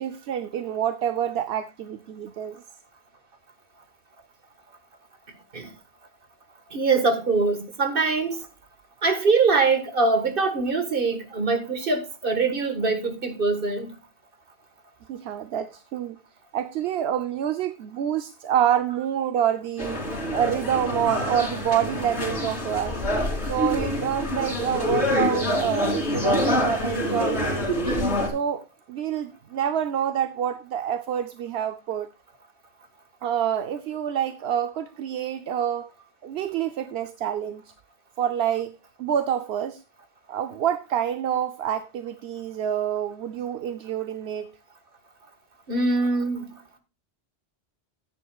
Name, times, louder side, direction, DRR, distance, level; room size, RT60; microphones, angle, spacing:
voice 1, 0.0-2.6 15.1-16.2 16.5-20.0 20.3-23.0 23.4-27.7 28.3-32.1 33.2-35.9 36.2-37.6 38.2-39.8 40.3-44.5, right 9 dB, 70° right, 0.9 m, -27 dB
voice 2, 6.7-8.5 9.0-13.9 45.7-46.6, right 4 dB, 55° right, 1.8 m, -23 dB
sound 1, 19.8-28.3, left 1 dB, 80° left, 3.4 m, -26 dB
14.5 x 9.8 x 2.4 m
omnidirectional pair, 1.1 m